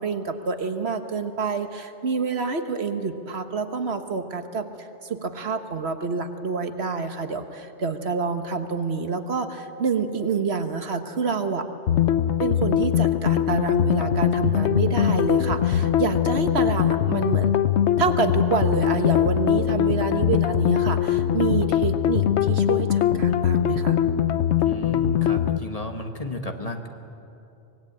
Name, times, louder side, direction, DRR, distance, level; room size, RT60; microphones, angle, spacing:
voice 1, 0.0-11.7 12.4-17.5 18.0-24.0, right 5 dB, 60° right, 7 dB, 1.4 m, -27 dB
sound 1, 11.9-25.6, left 10 dB, 65° left, 1.0 m, -22 dB
voice 2, 24.6-26.9, left 2 dB, 30° left, 4 dB, 1.4 m, -33 dB
24.5 x 19.5 x 8.8 m, 2.8 s
omnidirectional pair, 1.3 m